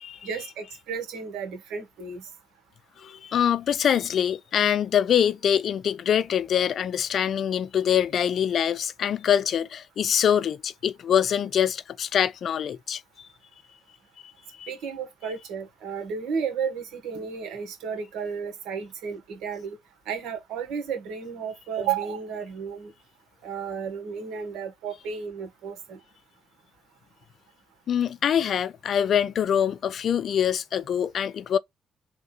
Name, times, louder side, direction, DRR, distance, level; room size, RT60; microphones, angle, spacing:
voice 1, 0.2-2.2 14.7-19.8 20.1-22.9 23.4-26.0, right 6 dB, 90° right, 1.7 m, -33 dB
voice 2, 3.0-13.3 14.6-14.7 27.9-31.6, left 9 dB, 60° left, 0.4 m, -24 dB
3.6 x 2.6 x 4.0 m
cardioid pair, 90°, 0 cm